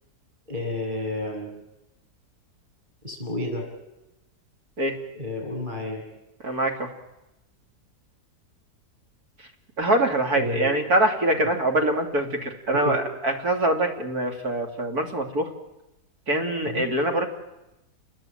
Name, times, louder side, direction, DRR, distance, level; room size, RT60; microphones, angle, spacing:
voice 1, 0.5-1.5 3.0-3.6 5.1-6.0 10.3-10.7 11.3-11.4 12.8-13.0 16.7-16.8, left 2 dB, 25° right, 2 dB, 8.2 m, -31 dB
voice 2, 6.4-6.9 9.8-15.5 16.3-17.3, right 1 dB, 60° right, 4 dB, 3.5 m, -24 dB
29.5 x 20.5 x 9.2 m, 0.96 s
omnidirectional pair, 1.8 m